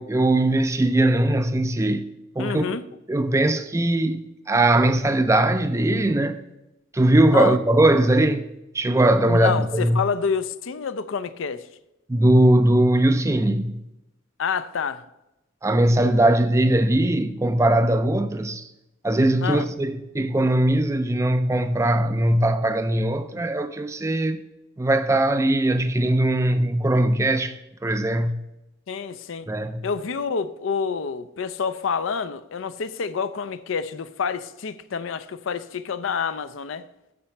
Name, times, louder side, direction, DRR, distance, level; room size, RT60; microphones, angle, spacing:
voice 1, 0.0-2.1 2.4-2.8 3.1-6.4 6.9-10.0 12.1-13.8 15.6-18.7 19.0-24.4 24.8-27.5 27.8-28.4 29.5-29.9, right 1 dB, 15° right, 0.4 m, -20 dB
voice 2, 2.4-2.8 7.3-7.6 9.3-11.6 14.4-15.0 19.4-19.7 28.9-29.5 29.8-36.9, left 6 dB, 70° left, 0.5 m, -28 dB
8.7 x 4.4 x 6.9 m
head